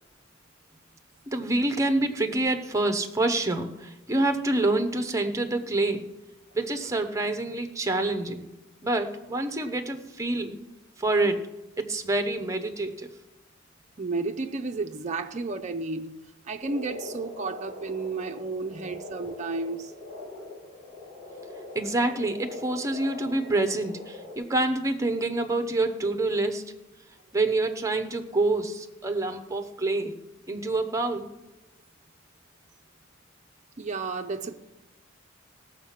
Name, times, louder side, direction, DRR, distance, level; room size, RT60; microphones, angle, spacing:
voice 1, 1.3-6.1 6.5-8.5 8.8-10.6 11.0-11.4 11.8-13.1 21.7-26.6 27.3-30.2 30.5-31.3, right 2 dB, 15° right, 0.8 m, -27 dB
voice 2, 14.0-19.9 33.8-34.5, right 3 dB, 35° right, 0.5 m, -32 dB
Frog, 16.6-24.4, left 2 dB, 30° left, 5.7 m, -42 dB
17.0 x 7.2 x 5.8 m
head